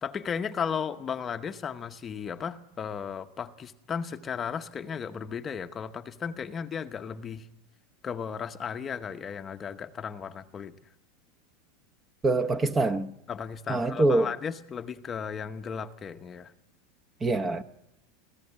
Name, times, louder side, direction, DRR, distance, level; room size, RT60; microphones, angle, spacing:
voice 1, 0.0-7.5 8.0-10.8 13.3-16.5, left 7 dB, 25° left, 9 dB, 0.8 m, -35 dB
voice 2, 12.2-13.1 13.7-14.3 17.2-17.6, right 2 dB, 15° right, 11 dB, 0.8 m, -24 dB
23.5 x 15.0 x 9.8 m, 0.89 s
supercardioid pair, 145°, 0 cm